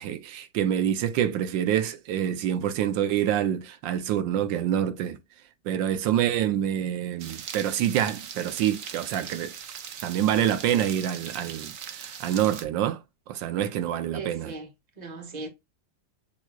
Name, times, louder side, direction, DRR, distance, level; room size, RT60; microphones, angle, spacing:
voice 1, 0.0-5.2 5.6-9.5 10.0-13.0 13.3-14.5, right 10 dB, 85° right, 1.3 m, -26 dB
sound 1, 7.2-12.6, right 8 dB, 55° right, 1.0 m, -40 dB
voice 2, 14.1-14.7 15.0-15.5, right 3 dB, 25° right, 1.4 m, -37 dB
7.2 x 3.1 x 2.2 m
omnidirectional pair, 2.0 m